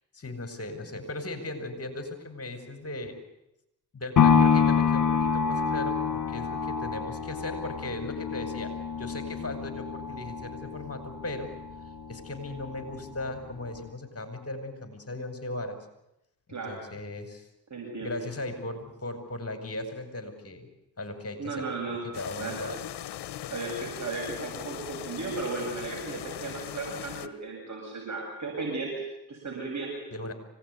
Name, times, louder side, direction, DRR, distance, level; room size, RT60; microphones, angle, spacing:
voice 1, 0.1-3.2 3.9-11.5 12.1-15.8 16.5-17.5 18.0-20.7 21.0-22.8 30.1-30.3, left 2 dB, 35° left, 7 dB, 5.6 m, -37 dB
sound 1, 4.2-12.3 12.7-12.8, left 6 dB, 50° left, 3.0 m, -27 dB
voice 2, 17.7-18.2 21.4-22.0 22.4-22.6 23.5-28.9 29.3-29.9, right 3 dB, 45° right, -1 dB, 7.7 m, -35 dB
sound 2, 22.1-27.3, left 12 dB, 80° left, 1.4 m, -39 dB
25.5 x 18.5 x 9.6 m, 0.85 s
supercardioid pair, 60°, 40 cm